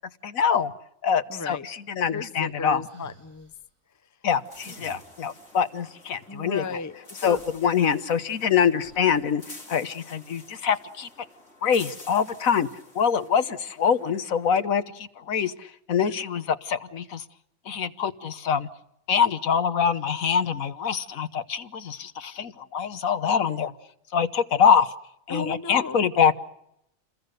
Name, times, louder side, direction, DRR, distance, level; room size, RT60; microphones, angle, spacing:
voice 1, 0.2-0.7 1.0-2.8 4.2-6.6 7.2-9.4 9.7-11.1 11.6-12.7 12.9-17.2 17.7-18.7 19.1-23.7 24.1-24.9 25.3-26.4, left 7 dB, 75° left, 11 dB, 1.5 m, -24 dB
voice 2, 1.3-1.6 2.1-3.5 6.3-6.9 7.2-7.4 25.3-26.0, left 4 dB, 15° left, 11 dB, 0.7 m, -34 dB
sound 1, 2.1-3.7 4.5-5.5 7.0-7.1 7.3-8.3 8.8-9.4, right 1 dB, 65° right, 8.1 m, -52 dB
sound 2, 4.3-14.6, left 2 dB, 60° left, 4.9 m, -49 dB
29.0 x 21.5 x 6.6 m, 0.79 s
omnidirectional pair, 1.4 m